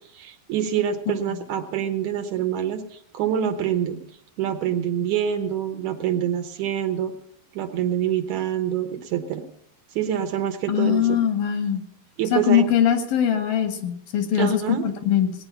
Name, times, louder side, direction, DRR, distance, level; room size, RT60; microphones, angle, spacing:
voice 1, 0.1-4.0 4.4-7.1 7.5-9.4 10.0-11.2 12.2-12.6 14.4-14.8, right 9 dB, 75° right, 7 dB, 2.0 m, -26 dB
voice 2, 10.7-11.8 12.3-15.3, left 9 dB, 85° left, 7 dB, 3.4 m, -21 dB
18.5 x 9.5 x 5.5 m, 0.71 s
omnidirectional pair, 4.0 m